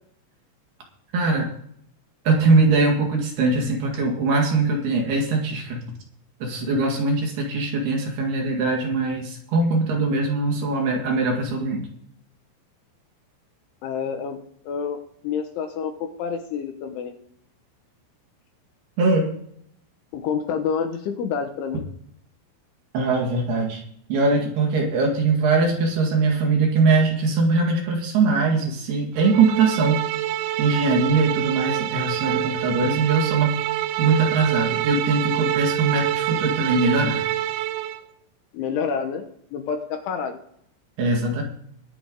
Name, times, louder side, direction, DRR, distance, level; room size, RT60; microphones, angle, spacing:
voice 1, 1.1-1.5 2.2-5.9 6.4-11.8 19.0-19.3 22.9-23.8 24.1-30.0 30.6-33.5 34.0-37.2 41.0-41.4, right 3 dB, 60° right, 0 dB, 3.5 m, -21 dB
voice 2, 13.8-14.4 14.6-15.0 15.2-15.9 16.2-17.1 20.1-21.8 38.5-39.2 39.5-40.4, left 6 dB, 75° left, 6 dB, 3.3 m, -28 dB
sound 1, 29.2-38.0, right 14 dB, 90° right, 3.6 m, -26 dB
23.0 x 7.8 x 3.8 m, 0.69 s
omnidirectional pair, 6.0 m